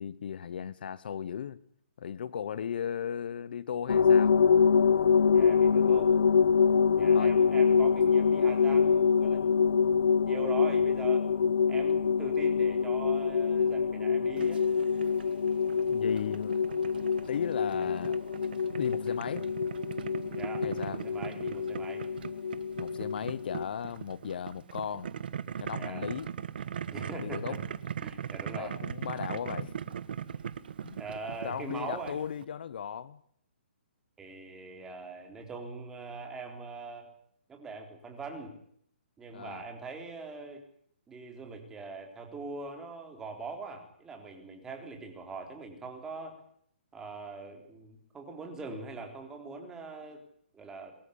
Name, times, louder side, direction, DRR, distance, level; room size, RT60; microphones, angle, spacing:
voice 1, 0.0-1.6 2.0-4.4 7.0-7.3 15.8-16.7 17.2-18.3 18.8-19.5 20.6-21.1 22.8-25.1 25.6-26.3 27.1-27.6 28.5-29.7 30.8-31.0 31.4-33.2 39.3-39.6, left 8 dB, 55° left, 1.1 m, -36 dB
sound 1, 3.9-23.7, left 6 dB, 85° left, 0.8 m, -25 dB
voice 2, 5.3-6.1 6.9-11.3 11.7-14.6 20.3-22.0 25.7-26.1 26.9-27.6 28.0-28.8 31.0-32.2 34.2-37.1 37.5-38.5 39.2-40.6 41.1-46.4 46.9-50.2 50.5-50.9, right 4 dB, 10° right, 3.7 m, -42 dB
Boiling, 14.4-32.4, right 8 dB, 55° right, 1.4 m, -40 dB
23.5 x 14.0 x 9.8 m
hypercardioid pair, 165°, 6 cm